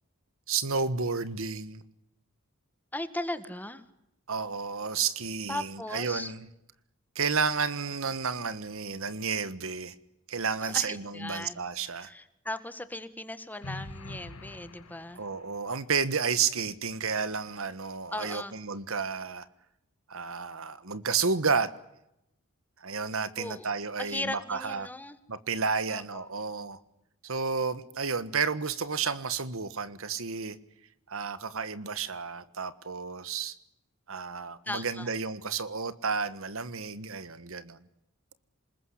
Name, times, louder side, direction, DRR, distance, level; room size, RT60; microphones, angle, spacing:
voice 1, 0.5-1.8 4.3-6.4 7.1-9.9 10.3-12.1 15.1-19.5 20.1-21.7 22.8-24.9 25.3-26.8 27.2-30.6 31.1-33.5 34.1-37.8, right 5 dB, 65° right, 14 dB, 1.5 m, -31 dB
voice 2, 2.9-3.8 5.5-6.3 10.6-11.6 11.9-15.2 18.1-18.5 23.4-23.7 24.0-25.2 25.9-26.2 34.6-35.1, left 1 dB, 10° left, 11 dB, 1.7 m, -37 dB
sound 1, 13.6-15.7, left 2 dB, 85° left, 2.2 m, -44 dB
27.5 x 21.0 x 10.0 m, 0.83 s
head